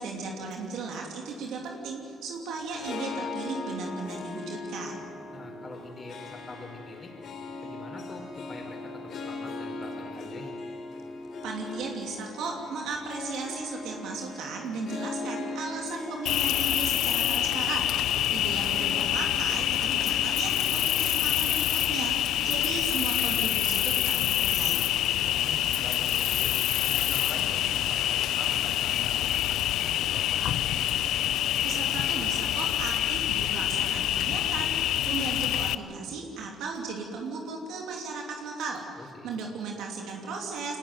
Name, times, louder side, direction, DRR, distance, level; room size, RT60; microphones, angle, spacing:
voice 1, 0.0-5.0 11.4-24.9 31.6-40.8, right 4 dB, 85° right, 0 dB, 2.9 m, -36 dB
Harp, 2.6-21.9, left 3 dB, 65° left, 3.5 m, -39 dB
voice 2, 5.3-7.1 7.6-10.6 18.1-18.5 25.3-30.6 39.0-39.3, left 2 dB, 35° left, 2 dB, 5.2 m, -44 dB
Cricket, 16.3-35.8, left 12 dB, 85° left, 0.6 m, -26 dB
24.0 x 18.5 x 9.4 m, 2.8 s
cardioid pair, 90°, 0 cm